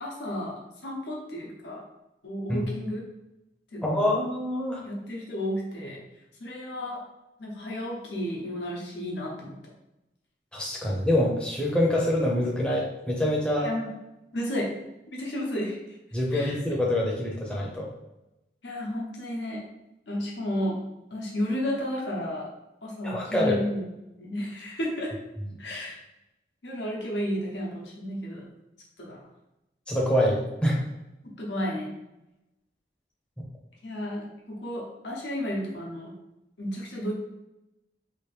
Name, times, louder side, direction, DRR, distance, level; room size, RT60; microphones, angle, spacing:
voice 1, 0.0-1.8 2.2-3.0 3.7-4.1 4.8-6.0 6.4-7.0 7.4-9.5 13.6-13.9 14.3-14.7 15.1-15.8 16.3-16.6 18.6-19.6 20.1-20.8 21.1-22.5 22.8-23.8 24.2-25.1 25.6-26.0 26.6-28.5 29.0-29.2 31.4-31.9 33.8-36.1 36.6-37.1, equal, 90° left, -2 dB, 0.9 m, -32 dB
voice 2, 3.8-4.8 10.5-13.7 16.1-17.9 23.0-23.6 29.9-30.8, left 1 dB, 5° left, -3 dB, 0.6 m, -25 dB
3.0 x 2.5 x 3.3 m, 0.93 s
head